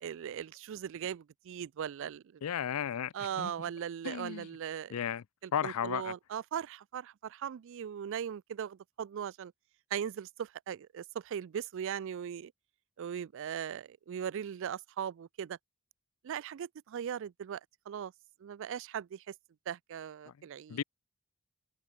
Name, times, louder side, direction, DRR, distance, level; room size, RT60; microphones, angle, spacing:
voice 1, 0.0-2.4 3.1-5.0 5.4-9.5 9.9-12.5 13.0-15.6 16.2-17.6 17.9-18.1 18.4-19.3 19.7-20.8, right 8 dB, 60° right, 0.3 m, -39 dB
voice 2, 2.4-3.5 4.0-4.5 4.9-5.2 5.5-6.1 20.3-20.8, left 8 dB, 90° left, 0.4 m, -35 dB
head